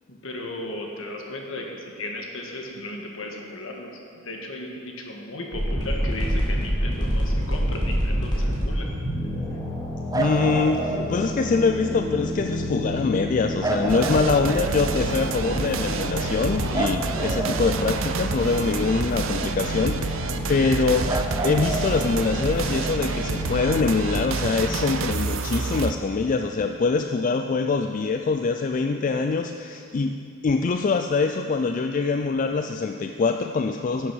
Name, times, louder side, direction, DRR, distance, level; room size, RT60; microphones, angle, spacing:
voice 1, 0.1-8.9 10.9-11.1, left 1 dB, 65° left, 1 dB, 1.6 m, -35 dB
sound 1, 5.5-25.2, equal, 20° left, 2.7 m, -29 dB
voice 2, 10.1-34.1, left 4 dB, 40° left, 6 dB, 0.3 m, -24 dB
sound 2, 10.1-11.6 13.6-15.3 16.7-18.7 21.1-22.8 24.9-25.0, right 2 dB, 15° right, 0.6 m, -30 dB
sound 3, 13.9-25.9, right 4 dB, 70° right, 0.6 m, -29 dB
11.0 x 7.5 x 6.3 m, 2.3 s
head